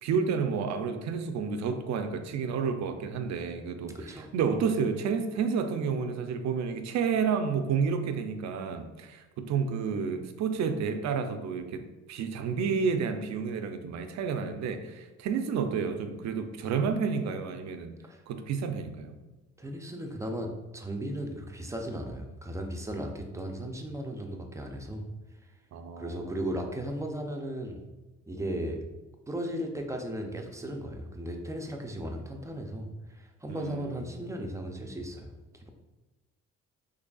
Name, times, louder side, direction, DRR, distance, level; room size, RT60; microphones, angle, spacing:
voice 1, 0.0-11.8 12.1-17.9 18.3-19.2 25.7-26.3 33.5-34.0, right 6 dB, 65° right, 7 dB, 0.4 m, -30 dB
voice 2, 3.9-4.3 18.1-18.2 19.6-25.1 26.0-27.8 28.3-28.8 29.3-35.3 35.5-35.7, right 1 dB, 10° right, 3 dB, 0.4 m, -36 dB
3.7 x 3.2 x 2.3 m, 1.1 s
cardioid pair, 90°, 30 cm